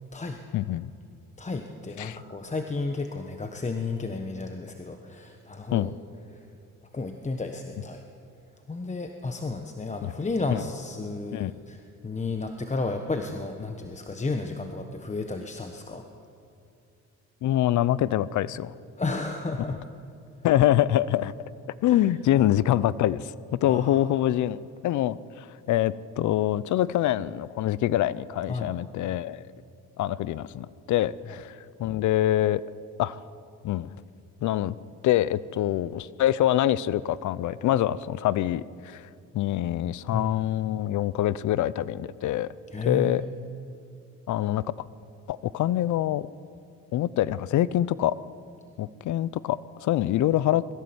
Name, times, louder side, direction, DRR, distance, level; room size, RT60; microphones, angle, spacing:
voice 1, 0.5-0.9 2.0-2.2 5.7-5.9 10.0-10.1 10.5-10.6 11.3-11.5 17.4-18.7 20.4-21.3 21.8-29.4 30.0-32.6 33.0-33.2 33.6-33.9 34.4-34.7 35.0-39.0 39.3-42.5 42.8-43.2 44.3-44.6 45.3-46.3 46.9-48.1 48.8-50.7, left 13 dB, 75° left, 19 dB, 0.6 m, -25 dB
voice 2, 1.4-5.9 6.3-6.4 6.9-8.0 8.7-16.1 19.0-19.8 21.9-22.0 23.6-24.0 28.5-28.7 40.1-40.3 42.7-43.2, left 3 dB, 25° left, 5 dB, 1.3 m, -32 dB
21.5 x 15.0 x 8.0 m, 2.6 s
cardioid pair, 90°, 30 cm